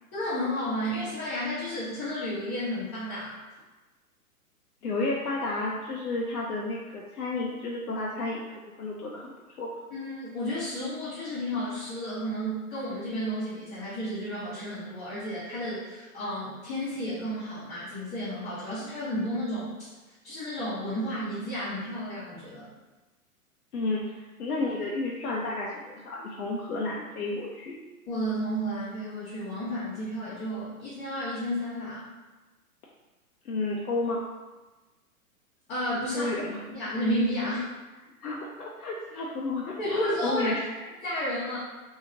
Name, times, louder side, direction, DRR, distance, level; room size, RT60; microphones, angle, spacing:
voice 1, 0.1-3.4 9.9-19.9 20.2-22.7 28.1-32.0 35.7-36.3 36.7-37.6 39.8-40.5 41.0-41.6, equal, 25° left, -12 dB, 0.9 m, -32 dB
voice 2, 4.8-8.4 8.8-9.3 9.6-9.7 23.7-27.8 33.4-34.2 36.1-36.6 38.2-40.6, left 2 dB, 80° left, -3 dB, 0.6 m, -31 dB
2.8 x 2.7 x 2.5 m, 1.2 s
hypercardioid pair, 120°, 45 cm